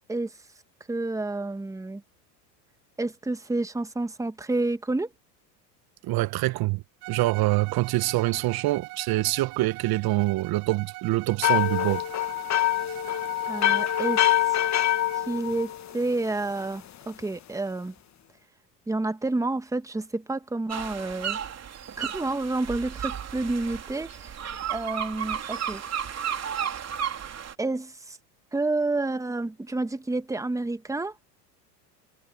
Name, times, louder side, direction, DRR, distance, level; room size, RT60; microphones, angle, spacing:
voice 1, 0.9-2.0 3.0-5.1 13.5-14.2 15.3-17.9 18.9-21.4 22.0-24.1 24.7-25.8 27.6-28.2 28.5-31.1, right 2 dB, 5° right, 1.5 m, -29 dB
voice 2, 6.0-6.8 7.1-12.0, right 18 dB, 50° right, 1.3 m, -25 dB
Bowed string instrument, 7.0-15.3, right 27 dB, 65° right, 2.1 m, -42 dB
sound 1, 11.4-16.3, left 13 dB, 35° left, 1.5 m, -25 dB
sound 2, 20.7-27.5, right 8 dB, 30° right, 4.2 m, -33 dB
hypercardioid pair, 90°, 48 cm